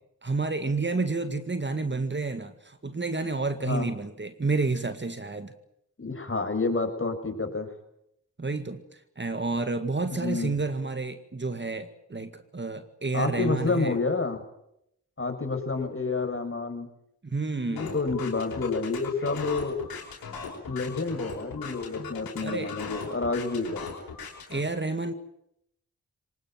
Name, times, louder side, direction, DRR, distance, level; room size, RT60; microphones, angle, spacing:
voice 1, 0.2-5.5 8.4-14.0 17.2-17.9 22.4-22.7 24.5-25.1, right 3 dB, 30° right, 10 dB, 2.1 m, -30 dB
voice 2, 6.0-7.7 10.1-10.5 13.1-14.4 15.2-16.9 17.6-19.8 20.7-23.9, left 3 dB, 35° left, 7 dB, 6.3 m, -29 dB
sound 1, 17.8-24.6, left 6 dB, 85° left, 5.3 m, -39 dB
24.0 x 19.5 x 9.1 m, 0.77 s
supercardioid pair, 40°, 35 cm